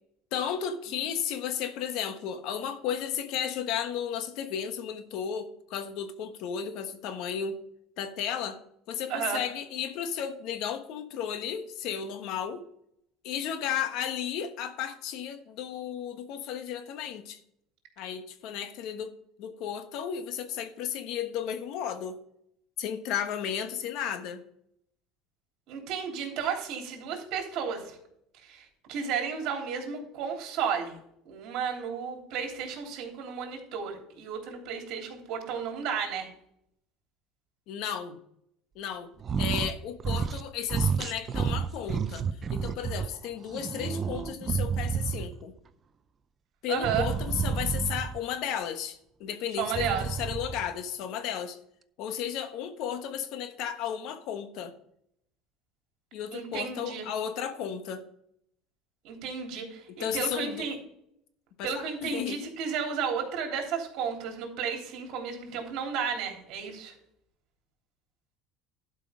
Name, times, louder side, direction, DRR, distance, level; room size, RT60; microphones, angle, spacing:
voice 1, 0.3-7.6 8.0-8.6 8.9-12.6 13.2-17.4 18.0-22.2 22.8-24.4 37.7-38.2 38.7-39.1 39.4-45.5 46.6-51.6 52.0-54.7 56.1-58.0 60.0-60.7 61.6-62.4, left 8 dB, 65° left, 9 dB, 1.2 m, -34 dB
voice 2, 9.1-9.4 25.7-28.0 28.4-31.0 31.2-36.3 46.7-47.0 49.6-50.0 56.3-57.1 59.0-60.8 61.6-66.9, right 7 dB, 60° right, 1 dB, 3.3 m, -33 dB
sound 1, 39.2-39.7 40.0-40.4 40.7-43.1 43.5-45.4 46.8-48.2 49.6-50.7, right 6 dB, 30° right, 0.5 m, -30 dB
12.0 x 5.5 x 5.1 m, 0.73 s
cardioid pair, 130°, 0 cm